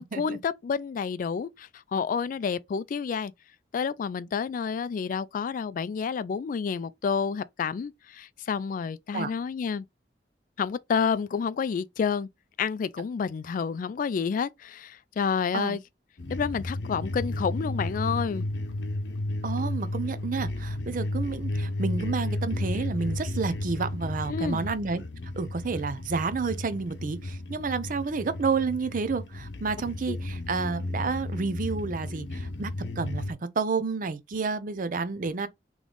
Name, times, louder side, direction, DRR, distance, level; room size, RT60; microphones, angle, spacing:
voice 1, 0.0-3.3 3.7-9.8 10.6-12.3 12.6-15.8 16.3-18.5 24.3-24.6 30.1-30.2, left 6 dB, 50° left, 0.3 m, -29 dB
sound 1, 16.2-33.3, left 1 dB, 85° left, 0.7 m, -33 dB
voice 2, 19.4-25.0 25.4-35.5, right 4 dB, 50° right, 0.5 m, -30 dB
3.8 x 3.1 x 3.4 m
head